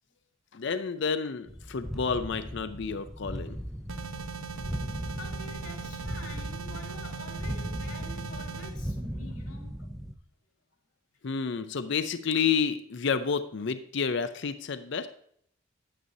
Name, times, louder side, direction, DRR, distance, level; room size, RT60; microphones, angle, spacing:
voice 1, 0.5-3.6 11.2-15.1, left 6 dB, 55° left, 11 dB, 0.5 m, -30 dB
sound 1, 1.5-10.1, equal, ahead, 0.4 m, -37 dB
sound 2, 3.9-8.7, right 6 dB, 75° right, 0.9 m, -40 dB
voice 2, 5.2-9.7, left 2 dB, 80° left, 1 dB, 2.2 m, -47 dB
9.5 x 9.3 x 2.7 m, 0.66 s
head